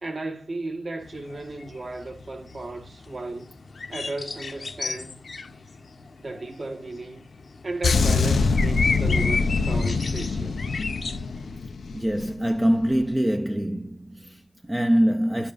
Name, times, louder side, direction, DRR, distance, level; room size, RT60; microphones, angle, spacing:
voice 1, 0.0-3.5 3.9-5.2 6.2-7.3 7.6-10.6, right 2 dB, 50° right, 1.4 m, -35 dB
sound 1, 1.0-11.6, left 4 dB, 60° left, 0.8 m, -35 dB
sound 2, 7.8-12.4 12.7-12.9, left 4 dB, 90° left, 0.6 m, -24 dB
voice 2, 11.9-15.5, equal, 15° right, 0.5 m, -24 dB
11.5 x 7.0 x 2.4 m
wide cardioid pair, 100°, 0 cm